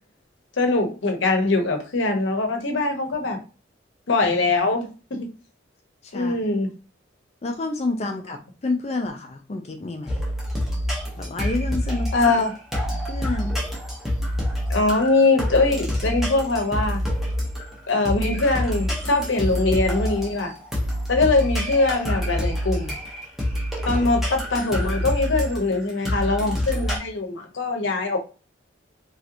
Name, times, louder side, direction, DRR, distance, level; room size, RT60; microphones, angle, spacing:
voice 1, 0.6-3.4 4.1-4.9 5.2-5.3 6.1-6.7 12.1-12.5 14.7-17.0 17.9-20.5 21.1-23.0 23.9-28.2, left 3 dB, 75° left, 0.7 m, -22 dB
voice 2, 6.0-6.4 7.4-10.2 11.2-12.1 13.1-13.6, left 2 dB, 35° left, 0.4 m, -29 dB
sound 1, 10.1-27.0, equal, ahead, 0.8 m, -27 dB
3.1 x 2.8 x 2.5 m
head